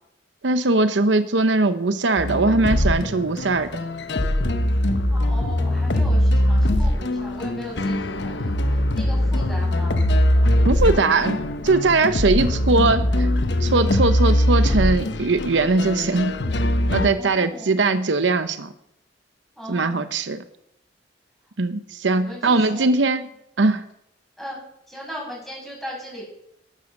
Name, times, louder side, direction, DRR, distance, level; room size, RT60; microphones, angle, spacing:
voice 1, 0.4-3.7 10.6-13.3 13.6-16.4 16.9-18.7 19.7-20.4 21.6-23.3 23.6-23.8, right 3 dB, 85° right, 11 dB, 0.8 m, -20 dB
sound 1, 2.2-17.1, left 1 dB, 70° left, 1.0 m, -21 dB
voice 2, 4.9-10.0 17.2-17.8 19.6-20.1 22.1-22.9 24.4-24.6 24.9-26.2, equal, ahead, -3 dB, 7.2 m, -37 dB
13.5 x 12.0 x 6.5 m, 0.78 s
head